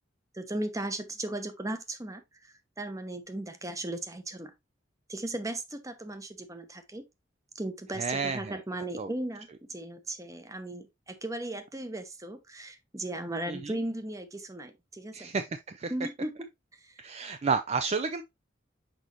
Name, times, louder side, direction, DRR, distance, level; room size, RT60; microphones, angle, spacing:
voice 1, 0.3-4.5 5.1-7.0 7.5-15.3 15.9-16.3 16.7-17.0, right 1 dB, 15° right, 0.9 m, -37 dB
voice 2, 8.0-8.6 9.0-9.1 13.5-13.7 15.1-15.9 17.0-18.2, right 5 dB, 35° right, 0.4 m, -31 dB
6.2 x 5.2 x 2.9 m
head